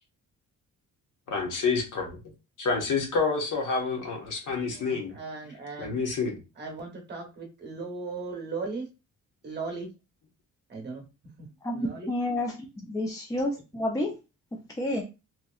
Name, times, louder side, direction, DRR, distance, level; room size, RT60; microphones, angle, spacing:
voice 1, 1.3-2.2 2.6-5.1 5.8-6.4, left 4 dB, 70° left, 1 dB, 1.2 m, -28 dB
voice 2, 4.7-6.0 6.6-8.9 9.4-9.9 10.7-11.1 11.4-12.1, right 4 dB, 30° right, 1 dB, 0.9 m, -37 dB
voice 3, 11.6-14.1 14.8-15.0, left 1 dB, 10° left, -1 dB, 0.3 m, -30 dB
3.0 x 2.7 x 2.3 m, 0.28 s
cardioid pair, 170°, 32 cm